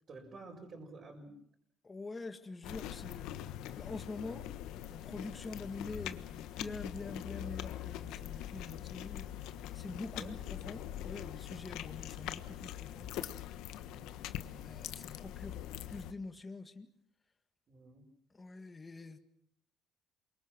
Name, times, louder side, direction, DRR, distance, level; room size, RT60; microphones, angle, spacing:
voice 1, 0.1-1.4 10.1-10.4 13.8-14.1 17.7-18.1, right 3 dB, 40° right, 5.5 m, -51 dB
voice 2, 1.8-3.3 3.6-4.5 4.9-9.3 9.7-13.1 14.5-15.6 15.9-16.9 18.3-19.2, left 3 dB, 20° left, 1.9 m, -45 dB
sound 1, 2.6-16.1, left 12 dB, 80° left, 1.3 m, -43 dB
28.0 x 24.0 x 6.1 m
cardioid pair, 120°, 0 cm